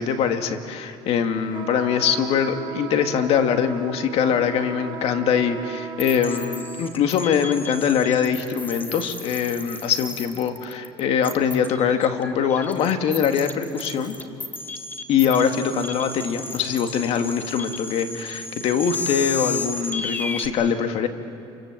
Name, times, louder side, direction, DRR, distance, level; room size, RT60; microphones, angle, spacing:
voice 1, 0.0-14.2 15.1-21.1, left 7 dB, 60° left, 6 dB, 2.1 m, -23 dB
sound 1, 1.5-7.0, right 8 dB, 40° right, 1.9 m, -37 dB
sound 2, 6.0-20.5, left 3 dB, 15° left, 1.7 m, -33 dB
28.0 x 25.5 x 7.5 m, 2.5 s
supercardioid pair, 100°, 12 cm